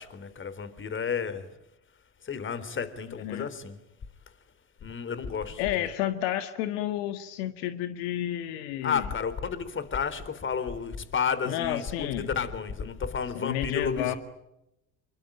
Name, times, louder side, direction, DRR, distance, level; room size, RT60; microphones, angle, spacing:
voice 1, 0.0-1.5 2.2-3.8 4.8-5.6 8.8-14.2, left 6 dB, 35° left, 3.8 m, -31 dB
voice 2, 3.2-3.5 5.6-9.1 11.5-12.3 13.3-14.1, left 12 dB, 70° left, 1.8 m, -31 dB
27.5 x 23.5 x 9.2 m
hypercardioid pair, 70°, 33 cm